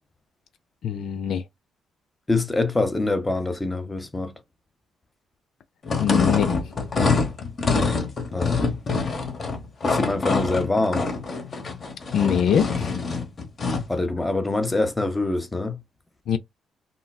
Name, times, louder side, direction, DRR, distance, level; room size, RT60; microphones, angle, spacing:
voice 1, 0.8-1.4 6.0-6.5 12.1-12.9 16.3-16.4, left 8 dB, 70° left, 0.4 m, -23 dB
voice 2, 2.3-4.3 8.3-8.6 9.8-11.0 13.9-15.8, left 2 dB, 15° left, 0.7 m, -24 dB
sound 1, 5.8-13.9, left 4 dB, 45° left, 0.9 m, -25 dB
3.8 x 2.2 x 2.2 m
cardioid pair, 90°, 0 cm